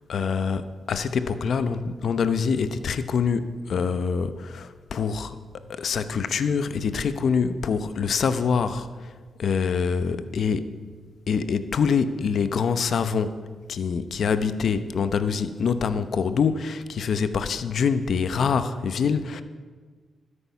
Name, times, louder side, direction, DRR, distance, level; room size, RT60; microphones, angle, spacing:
voice 1, 0.1-5.4 5.7-9.1 9.4-10.7 11.3-13.4 13.7-19.4, left 6 dB, 70° left, 12 dB, 0.8 m, -25 dB
12.5 x 10.0 x 5.7 m, 1.5 s
cardioid pair, 75°, 0 cm